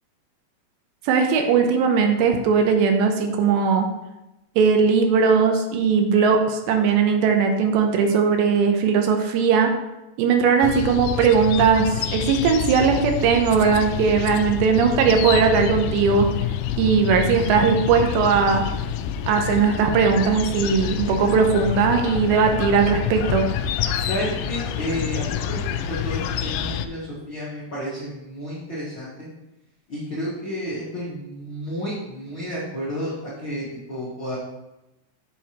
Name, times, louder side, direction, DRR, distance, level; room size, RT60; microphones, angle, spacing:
voice 1, 1.1-3.9 4.6-9.7 10.2-16.3 16.8-18.6 19.3-23.4, right 5 dB, 80° right, 4 dB, 2.9 m, -19 dB
sound 1, 10.6-26.9, left 9 dB, 85° left, 2.6 m, -27 dB
voice 2, 24.1-29.3 29.9-34.3, equal, 50° left, -10 dB, 1.5 m, -31 dB
8.4 x 7.2 x 3.0 m, 0.95 s
omnidirectional pair, 5.2 m